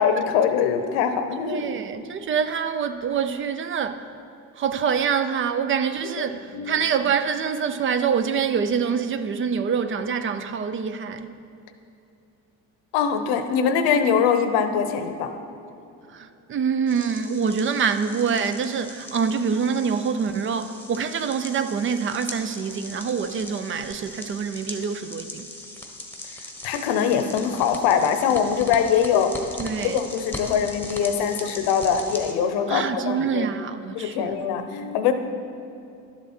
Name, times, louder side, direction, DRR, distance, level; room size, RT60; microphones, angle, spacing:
voice 1, 0.0-1.6 6.5-6.8 12.9-15.3 26.6-29.3 29.8-33.5 33.9-35.1, left 7 dB, 85° left, 0.9 m, -22 dB
voice 2, 1.4-4.1 4.6-11.4 16.1-25.5 29.6-30.0 32.7-34.4, right 6 dB, 35° right, 0.4 m, -25 dB
sound 1, 16.9-32.3, left 2 dB, 5° left, 1.1 m, -39 dB
11.5 x 7.3 x 4.3 m
cardioid pair, 120°, 37 cm